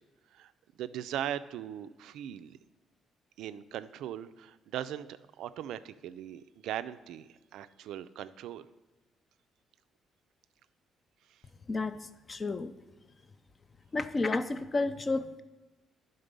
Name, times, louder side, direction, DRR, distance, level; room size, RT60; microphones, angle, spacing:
voice 1, 0.8-2.6 3.4-8.7 11.3-11.4, right 11 dB, 85° right, 12 dB, 0.3 m, -39 dB
voice 2, 11.7-12.7 13.9-15.4, left 3 dB, 25° left, 12 dB, 0.4 m, -31 dB
10.5 x 3.9 x 5.2 m, 1.2 s
cardioid pair, 145°, 0 cm